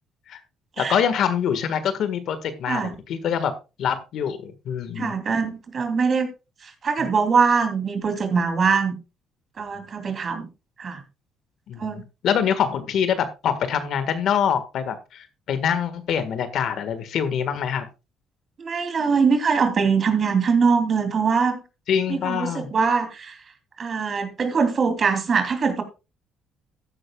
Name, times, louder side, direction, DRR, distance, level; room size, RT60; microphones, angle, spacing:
voice 1, 0.8-3.5 3.8-5.1 11.7-17.8 21.9-22.7, left 8 dB, 65° left, 1.6 m, -25 dB
voice 2, 2.7-3.0 4.9-6.3 6.6-9.0 9.6-10.5 10.8-11.0 11.8-12.0 18.6-21.6 22.1-23.4 23.8-25.8, right 5 dB, 45° right, 3.0 m, -22 dB
14.0 x 11.0 x 2.3 m
cardioid pair, 90°, 0 cm